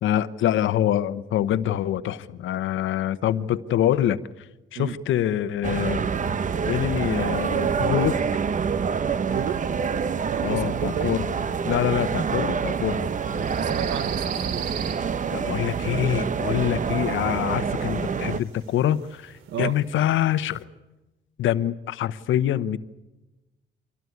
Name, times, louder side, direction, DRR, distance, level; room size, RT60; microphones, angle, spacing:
voice 1, 0.0-4.2 4.7-6.0 6.7-8.2 10.4-11.3 11.6-13.0 15.3-20.7 21.4-22.8, left 11 dB, 75° left, 1.0 m, -25 dB
sound 1, 5.6-18.4, right 6 dB, 40° right, 0.9 m, -26 dB
voice 2, 9.2-9.6 10.3-11.2 13.5-14.7 19.5-19.8, right 10 dB, 70° right, 0.9 m, -32 dB
sound 2, 9.3-20.6, right 8 dB, 85° right, 2.7 m, -43 dB
25.0 x 17.5 x 9.6 m
cardioid pair, 90°, 20 cm